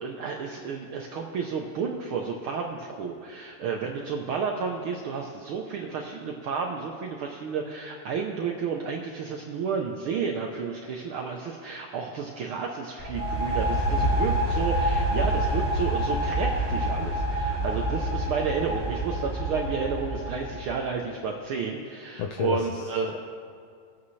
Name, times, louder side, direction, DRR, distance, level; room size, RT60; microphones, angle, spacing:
voice 1, 0.0-23.1, right 5 dB, 85° right, 1 dB, 1.1 m, -31 dB
sound 1, 13.0-20.7, right 1 dB, 15° left, 1.6 m, -27 dB
voice 2, 22.2-23.2, left 5 dB, 75° left, 3 dB, 1.5 m, -31 dB
21.5 x 8.5 x 3.2 m, 2.2 s
omnidirectional pair, 3.3 m